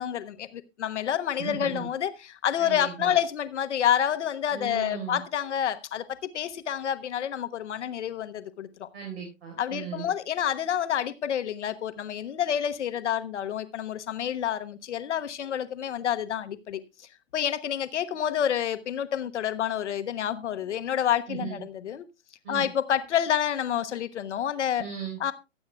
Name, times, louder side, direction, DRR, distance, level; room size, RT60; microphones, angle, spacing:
voice 1, 0.0-8.9 9.6-16.8 17.3-22.0 22.5-24.8 25.2-25.3, left 9 dB, 60° left, 1.2 m, -28 dB
voice 2, 1.4-1.9 2.6-3.1 4.5-5.2 8.9-10.1 21.3-21.6 22.4-22.7 24.8-25.2, right 6 dB, 50° right, 4.4 m, -37 dB
23.5 x 8.5 x 2.3 m
figure-of-eight pair, 120°, 39 cm